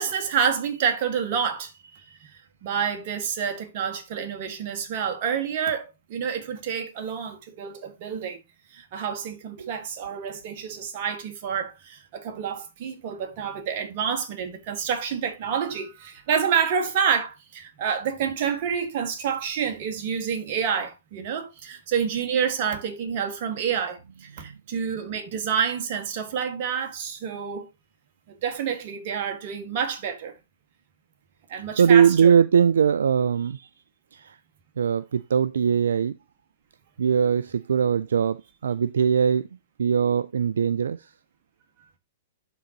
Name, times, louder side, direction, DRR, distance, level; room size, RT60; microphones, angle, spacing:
voice 1, 0.0-2.3 2.6-8.4 8.7-27.7 28.4-30.3 31.5-32.3, right 7 dB, 50° right, 1.7 m, -28 dB
voice 2, 31.8-33.7 34.1-34.4 34.8-36.2 37.0-39.5 39.8-41.1, right 7 dB, 80° right, 0.3 m, -21 dB
11.5 x 3.9 x 2.9 m
hypercardioid pair, 120°, 0 cm